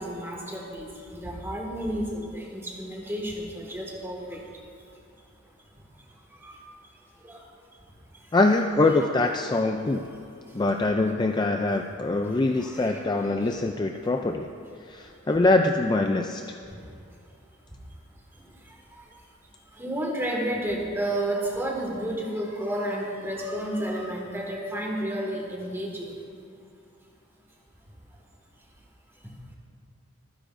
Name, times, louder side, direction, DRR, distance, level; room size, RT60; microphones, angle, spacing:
voice 1, 0.0-4.4 6.4-6.6 7.2-7.4 9.0-9.1 12.4-13.0 19.8-26.1, right 1 dB, 10° right, -2 dB, 1.9 m, -31 dB
voice 2, 8.3-10.0 10.5-14.5 14.9-16.6, left 2 dB, 20° left, 4 dB, 0.4 m, -23 dB
25.0 x 10.0 x 2.6 m, 2.5 s
head